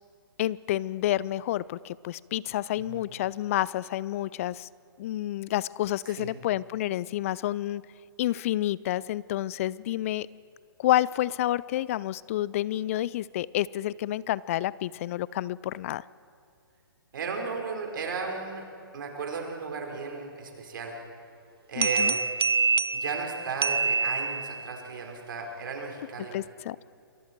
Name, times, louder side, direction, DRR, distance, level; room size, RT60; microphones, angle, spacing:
voice 1, 0.4-4.7 5.0-7.8 8.2-10.3 10.8-16.0 21.8-22.1 26.3-26.8, left 14 dB, 35° left, 21 dB, 0.4 m, -29 dB
voice 2, 17.1-18.6 18.9-20.9 21.7-22.2 22.9-26.4, right 4 dB, 60° right, 2 dB, 4.8 m, -35 dB
sound 1, 21.8-24.8, right 4 dB, 90° right, 0.6 m, -26 dB
28.0 x 23.0 x 4.6 m, 2.6 s
hypercardioid pair, 135°, 12 cm